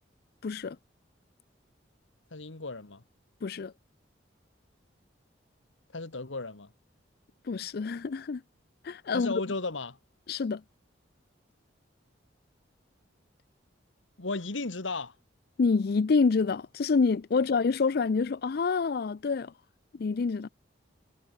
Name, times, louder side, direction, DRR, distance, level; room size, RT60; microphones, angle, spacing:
voice 1, 0.4-0.8 3.4-3.7 7.4-8.4 8.8-9.3 10.3-10.6 15.6-19.5 20.0-20.5, left 4 dB, 55° left, 0.4 m, -27 dB
voice 2, 2.3-3.0 5.9-6.7 9.1-10.0 14.2-15.1, left 3 dB, 85° left, 1.7 m, -35 dB
head